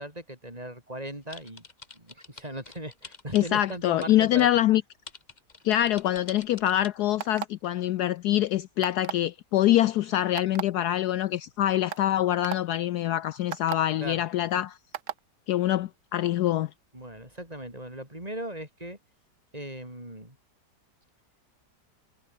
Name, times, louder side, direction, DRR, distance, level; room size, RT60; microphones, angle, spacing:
voice 1, 0.0-1.6 1.9-4.5 14.0-14.2 16.9-19.0 19.5-20.4, right 1 dB, 20° right, 6.3 m, -38 dB
sound 1, 1.3-4.5 5.1-6.9, left 4 dB, 25° left, 1.3 m, -45 dB
voice 2, 3.3-4.8 5.6-14.8 15.5-16.7, left 13 dB, 70° left, 1.1 m, -25 dB
sound 2, 7.2-7.7 8.8-9.3 10.4-10.6 11.4-11.5 11.9-12.0 12.4-12.6 13.5-13.8 14.9-15.2, right 11 dB, 75° right, 1.6 m, -33 dB
omnidirectional pair, 1.9 m